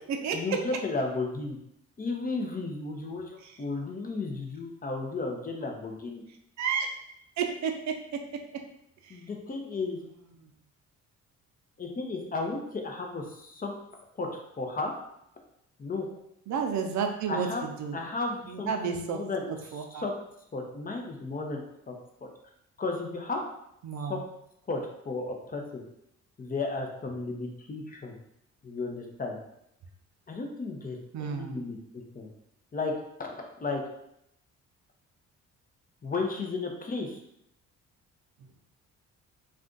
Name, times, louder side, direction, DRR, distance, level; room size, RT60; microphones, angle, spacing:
voice 1, 0.3-1.6 2.0-6.2 9.1-10.0 11.8-13.7 14.2-14.3 14.6-14.9 15.8-16.1 17.3-17.6 17.9-20.1 20.5-21.9 22.2-22.3 22.8-23.4 24.0-24.2 24.7-25.8 26.4-28.2 28.6-29.4 30.3-32.3 32.7-32.9 33.2-33.8 36.0-37.2, left 3 dB, 30° left, 2 dB, 0.6 m, -34 dB
voice 2, 6.6-6.9 7.4-7.7 16.5-17.5 17.8-18.0 18.5-19.2 19.7-20.1 23.8-24.2 31.1-31.6, right 6 dB, 70° right, 4 dB, 0.5 m, -30 dB
2.5 x 2.4 x 3.7 m, 0.76 s
cardioid pair, 90°, 30 cm